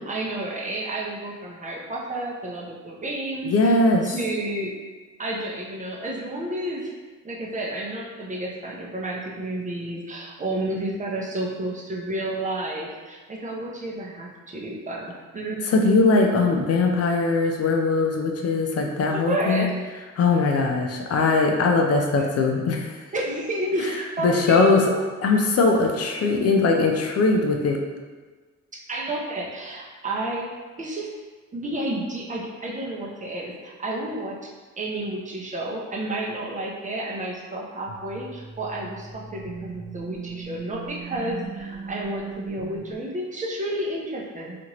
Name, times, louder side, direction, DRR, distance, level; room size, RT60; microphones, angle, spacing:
voice 1, 0.0-3.8 4.0-4.7 5.2-6.9 7.2-15.6 19.1-19.8 22.2-22.3 23.1-25.1 28.9-30.5 30.8-31.1 31.5-34.4 34.8-44.6, right 1 dB, 25° right, -3 dB, 0.6 m, -31 dB
voice 2, 3.4-4.1 15.6-19.7 20.2-22.9 24.2-24.8 25.2-27.8, left 3 dB, 55° left, 2 dB, 0.5 m, -20 dB
sound 1, 37.9-43.0, right 5 dB, 75° right, 0.7 m, -38 dB
2.8 x 2.5 x 2.9 m, 1.4 s
cardioid pair, 90°, 30 cm